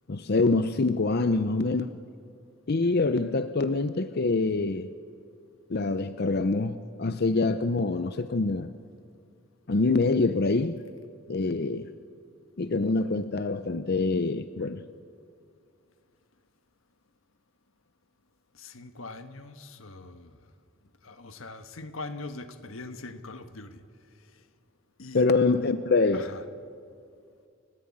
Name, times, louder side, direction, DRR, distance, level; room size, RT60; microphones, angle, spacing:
voice 1, 0.1-2.0 2.7-4.9 5.7-8.7 9.7-10.8 11.3-11.9 12.6-14.9 25.1-26.3, left 3 dB, 50° left, 0.6 m, -25 dB
voice 2, 18.5-20.4 21.0-23.8 24.3-24.4 25.0-25.3 26.1-26.5, left 3 dB, 90° left, 1.4 m, -42 dB
30.0 x 14.5 x 8.6 m
head